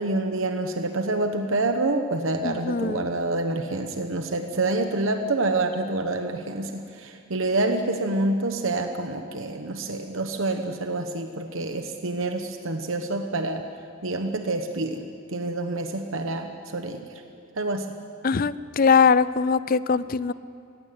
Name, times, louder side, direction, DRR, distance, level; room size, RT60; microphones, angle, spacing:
voice 1, 0.0-13.6 14.0-15.0 15.3-17.0 17.6-17.8, right 2 dB, 65° right, 6 dB, 1.1 m, -27 dB
voice 2, 2.4-3.1 18.2-20.3, left 5 dB, 40° left, 17 dB, 0.4 m, -21 dB
17.5 x 16.0 x 9.7 m, 2.7 s
head